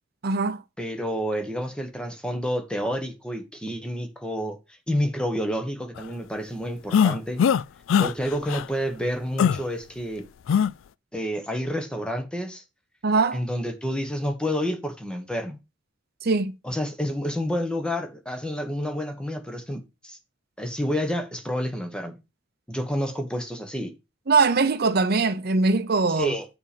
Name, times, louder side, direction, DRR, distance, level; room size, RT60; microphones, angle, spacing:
voice 1, 0.2-0.6 13.0-13.4 16.2-16.6 24.3-26.4, right 4 dB, 55° right, 0.8 m, -22 dB
voice 2, 0.8-4.6 4.9-7.4 8.0-10.3 11.1-12.6 13.3-15.6 16.6-20.2 20.6-22.2 22.7-23.9 26.2-26.4, equal, 5° left, 1.4 m, -29 dB
sound 1, 6.9-7.6 7.9-8.1 8.5-8.6 9.4-9.6 10.5-10.7, left 7 dB, 80° left, 0.3 m, -20 dB
8.0 x 4.5 x 5.1 m
head